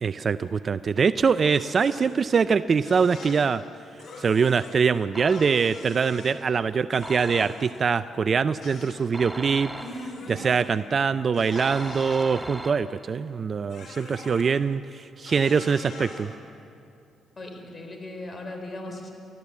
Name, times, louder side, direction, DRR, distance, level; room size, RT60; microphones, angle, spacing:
voice 1, 0.0-3.6 4.2-9.7 10.3-16.3, right 5 dB, 45° right, 13 dB, 0.4 m, -23 dB
sound 1, 1.5-2.2 2.9-3.4 4.0-4.7 5.3-6.3 6.9-7.9 8.6-9.0 9.8-10.6 11.3-12.3 13.7-14.4 15.3-16.3, left 3 dB, 60° left, 3.9 m, -44 dB
sound 2, 5.2-5.8 7.0-7.9 9.1-10.3 11.6-13.2, right 1 dB, 5° right, 1.3 m, -39 dB
voice 2, 9.8-10.3 17.4-19.1, left 1 dB, 35° left, 3 dB, 4.5 m, -38 dB
29.5 x 13.5 x 8.4 m, 2.7 s
cardioid pair, 90°, 0 cm